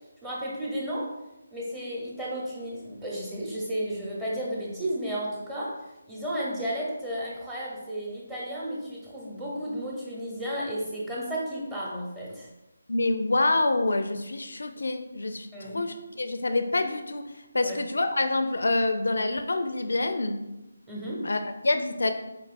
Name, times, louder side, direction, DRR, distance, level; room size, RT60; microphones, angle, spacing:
voice 1, 0.2-1.1 1.5-5.7 6.1-12.5 15.5-15.8 17.6-17.8 20.9-21.3, equal, 10° right, -5 dB, 0.9 m, -33 dB
voice 2, 12.9-20.4 21.2-22.1, left 2 dB, 70° left, 8 dB, 0.4 m, -27 dB
4.4 x 3.3 x 2.5 m, 0.98 s
figure-of-eight pair, 155°, 0 cm